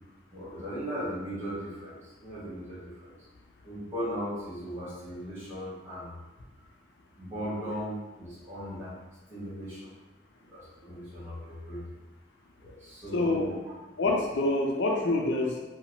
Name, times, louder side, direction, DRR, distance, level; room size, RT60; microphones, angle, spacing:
voice 1, 0.3-3.1 3.6-6.2 7.2-8.9 9.3-9.9 10.4-11.8 12.6-13.6, equal, 15° right, -11 dB, 1.3 m, -37 dB
voice 2, 13.1-13.5 14.0-15.6, left 2 dB, 85° left, 0 dB, 0.5 m, -26 dB
2.9 x 2.3 x 2.8 m, 1.1 s
head